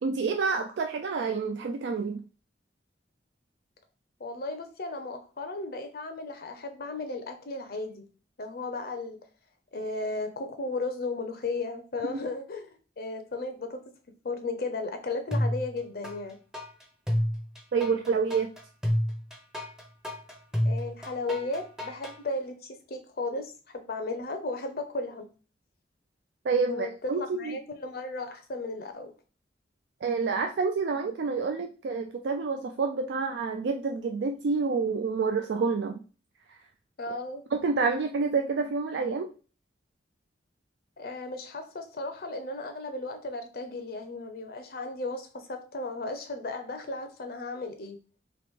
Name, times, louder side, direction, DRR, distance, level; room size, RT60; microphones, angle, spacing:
voice 1, 0.0-2.2 12.1-12.2 17.7-18.5 26.4-27.6 30.0-36.0 37.5-39.3, right 4 dB, 70° right, 4 dB, 0.3 m, -28 dB
voice 2, 4.2-8.0 8.4-9.2 9.7-13.8 14.2-16.4 20.6-25.2 26.7-29.1 37.0-37.4 41.0-48.0, left 2 dB, 55° left, 6 dB, 0.5 m, -35 dB
sound 1, 15.3-16.2 16.5-22.2, equal, 5° right, 0.6 m, -29 dB
3.0 x 2.9 x 3.5 m, 0.36 s
head